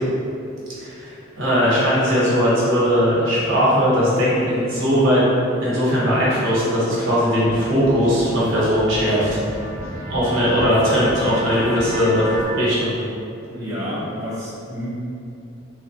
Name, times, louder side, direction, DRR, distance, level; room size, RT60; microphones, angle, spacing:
voice 1, 0.8-5.3 5.6-9.3 10.1-12.2 12.5-13.0, equal, 65° right, -8 dB, 0.9 m, -19 dB
sound 1, 7.4-7.6 7.8-12.5, equal, 85° left, 1.1 m, -31 dB
voice 2, 13.5-14.9, equal, 15° right, -11 dB, 0.6 m, -29 dB
3.1 x 2.1 x 2.7 m, 2.6 s
head